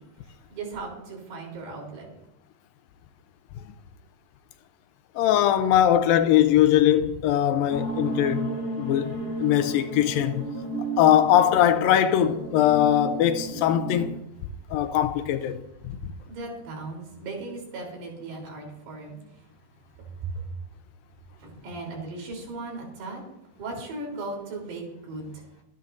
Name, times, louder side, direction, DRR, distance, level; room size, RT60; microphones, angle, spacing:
voice 1, 0.5-2.1 16.3-19.2 20.2-20.3 21.4-23.2 23.6-25.4, right 3 dB, 75° right, 5.7 m, -37 dB
voice 2, 5.2-8.5 8.8-10.4 11.0-14.1 14.7-15.6, left 11 dB, 85° left, 2.0 m, -21 dB
sound 1, 7.7-14.1, right 2 dB, 50° left, 4.8 m, -33 dB
24.5 x 11.0 x 2.6 m
omnidirectional pair, 4.8 m